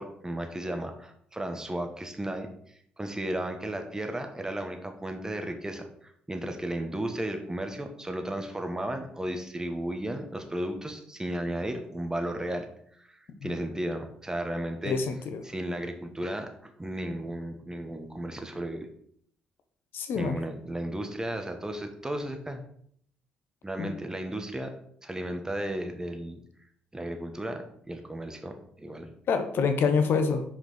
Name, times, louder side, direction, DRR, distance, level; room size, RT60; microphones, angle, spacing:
voice 1, 0.0-2.5 3.0-12.7 13.0-15.0 15.4-18.9 20.1-22.6 23.6-24.7 25.0-26.4 26.9-29.1, right 1 dB, 15° right, 5 dB, 1.5 m, -34 dB
voice 2, 14.8-15.4 19.9-20.4 23.8-23.9 29.3-30.4, left 5 dB, 65° left, 8 dB, 1.2 m, -26 dB
6.4 x 5.1 x 5.7 m, 0.66 s
hypercardioid pair, 50°, 4 cm